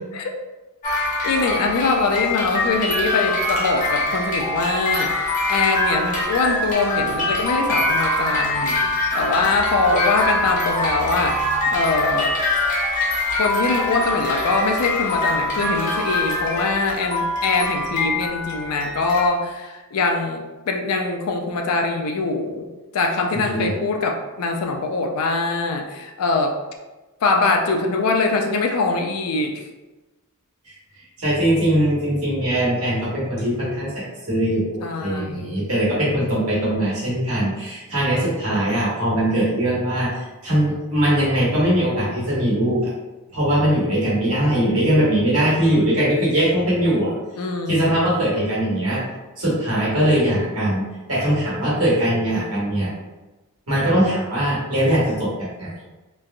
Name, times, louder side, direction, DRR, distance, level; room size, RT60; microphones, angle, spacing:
sound 1, 0.8-19.3, left 2 dB, 35° left, 0.7 m, -23 dB
voice 1, 1.2-8.8 9.1-12.3 13.3-22.7 22.9-26.5 27.2-29.6 34.8-35.6 47.4-48.1, left 3 dB, 80° left, 3 dB, 0.4 m, -23 dB
voice 2, 23.3-23.7 31.2-42.9 43.3-47.1 47.7-49.0 49.4-52.9 53.7-55.3 55.6-55.8, right 1 dB, 70° right, -6 dB, 1.2 m, -21 dB
3.2 x 2.2 x 2.4 m, 1.1 s
head